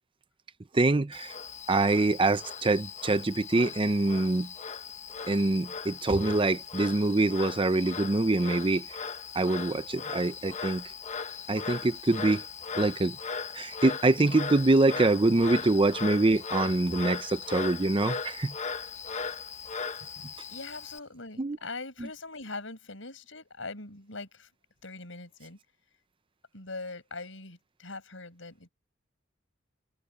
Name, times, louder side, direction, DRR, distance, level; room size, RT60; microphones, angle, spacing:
voice 1, 0.7-1.4 1.7-4.5 5.3-8.8 9.3-10.8 11.5-12.4 12.8-13.2 13.5-18.5 21.4-21.6, right 2 dB, 25° right, 0.6 m, -25 dB
Frog, 1.1-21.0, left 5 dB, 35° left, 1.0 m, -38 dB
voice 2, 20.5-24.5 24.8-25.6 26.5-28.7, left 3 dB, 75° left, 7.0 m, -42 dB
head